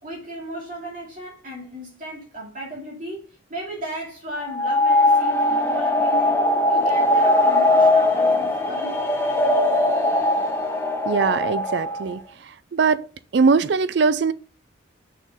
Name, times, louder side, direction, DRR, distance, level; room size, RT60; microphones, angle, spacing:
voice 1, 0.0-3.2 3.5-6.4 6.7-9.1, right 1 dB, 40° right, 2.6 m, -35 dB
sound 1, 4.5-12.1, left 1 dB, 10° left, 1.5 m, -20 dB
voice 2, 11.1-13.0 13.3-14.3, right 5 dB, 60° right, 0.4 m, -21 dB
6.4 x 6.4 x 3.7 m
head